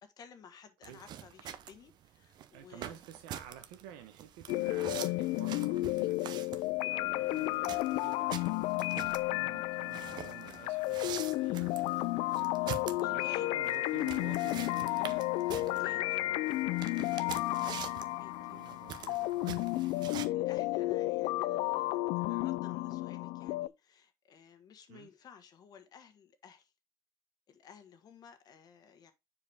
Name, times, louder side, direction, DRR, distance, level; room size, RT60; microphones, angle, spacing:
voice 1, 0.0-3.0 13.0-13.5 15.8-16.1 18.1-18.6 19.9-26.7 27.5-29.1, left 7 dB, 50° left, 1.3 m, -55 dB
sound 1, 0.8-20.3, right 10 dB, 55° right, 0.7 m, -45 dB
voice 2, 0.8-1.3 2.5-6.2 6.9-12.7 13.0-15.2 15.6-17.3 18.4-19.7 24.9-25.1, right 10 dB, 90° right, 1.1 m, -52 dB
sound 2, 4.5-23.7, left 18 dB, 80° left, 0.4 m, -32 dB
7.1 x 4.8 x 3.5 m
cardioid pair, 110°, 9 cm